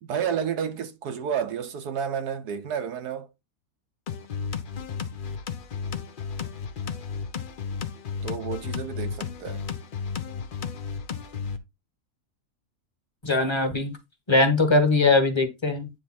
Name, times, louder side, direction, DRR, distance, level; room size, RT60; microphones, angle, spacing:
voice 1, 0.0-3.3 8.2-9.6, right 7 dB, 90° right, 1.6 m, -30 dB
sound 1, 4.1-11.6, left 6 dB, 45° left, 0.7 m, -33 dB
voice 2, 13.2-13.9 14.3-15.9, left 3 dB, 20° left, 1.3 m, -21 dB
9.8 x 3.3 x 4.3 m
omnidirectional pair, 1.6 m